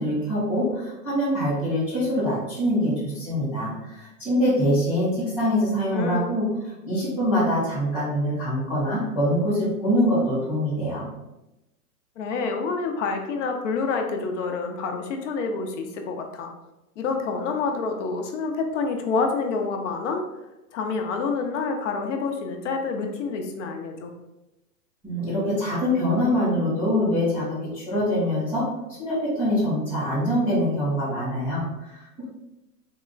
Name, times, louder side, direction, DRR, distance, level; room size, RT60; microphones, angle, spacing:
voice 1, 0.0-6.4 6.8-11.1 25.0-28.7 29.0-32.2, equal, 5° right, -15 dB, 0.3 m, -24 dB
voice 2, 5.9-6.3 12.2-16.5 17.0-20.2 20.7-24.1, left 4 dB, 50° left, 4 dB, 0.7 m, -27 dB
3.6 x 2.1 x 3.7 m, 0.96 s
hypercardioid pair, 130°, 46 cm